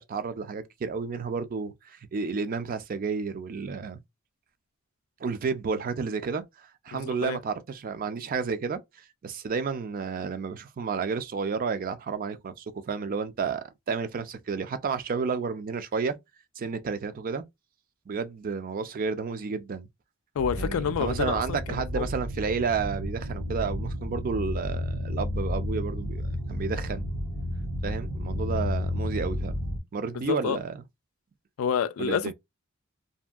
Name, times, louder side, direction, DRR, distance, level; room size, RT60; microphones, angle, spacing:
voice 1, 0.0-4.0 5.2-8.8 9.2-16.2 16.6-17.4 18.1-19.9 20.6-27.1 27.8-29.6 29.9-30.8 32.0-32.3, right 5 dB, 45° right, 0.4 m, -31 dB
voice 2, 6.9-7.4 20.4-22.1 30.3-30.6 31.6-32.3, left 7 dB, 80° left, 0.3 m, -29 dB
sound 1, 20.4-29.8, left 1 dB, 75° right, 0.8 m, -32 dB
2.7 x 2.5 x 2.3 m
head